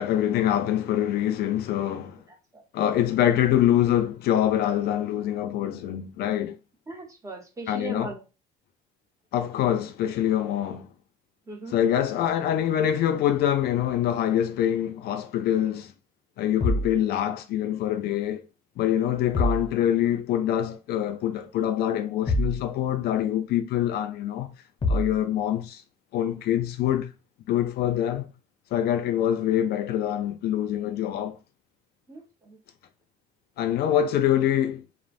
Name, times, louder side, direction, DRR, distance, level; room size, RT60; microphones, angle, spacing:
voice 1, 0.0-2.2 2.7-6.6 7.7-8.1 9.3-10.9 11.7-15.9 16.4-18.4 18.8-24.5 24.9-25.8 26.1-27.1 27.5-28.3 28.7-31.4 33.6-34.8, left 11 dB, 70° left, 0.4 m, -25 dB
voice 2, 6.9-8.2 11.5-11.8 32.1-32.6, right 2 dB, 20° right, 0.9 m, -38 dB
sound 1, 16.6-17.0 19.3-19.7 22.3-22.6 24.8-25.2, left 1 dB, 30° left, 0.6 m, -25 dB
3.1 x 2.0 x 2.5 m
cardioid pair, 110°, 17 cm